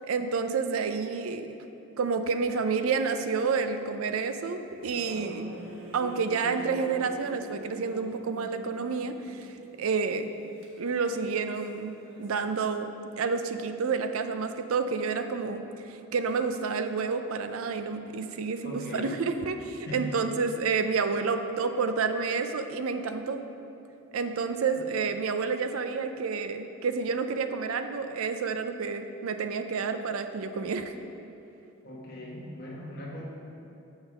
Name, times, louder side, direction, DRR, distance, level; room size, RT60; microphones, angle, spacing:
voice 1, 0.0-1.5 2.0-5.5 5.9-10.3 10.8-12.9 13.2-23.4 24.1-30.9, right 5 dB, 85° right, 8 dB, 0.5 m, -29 dB
sound 1, 4.6-12.7, right 1 dB, 65° right, 1.2 m, -47 dB
voice 2, 18.6-19.3 19.8-20.2 31.8-33.2, left 1 dB, 45° left, -4 dB, 1.2 m, -39 dB
6.4 x 5.2 x 6.1 m, 2.9 s
head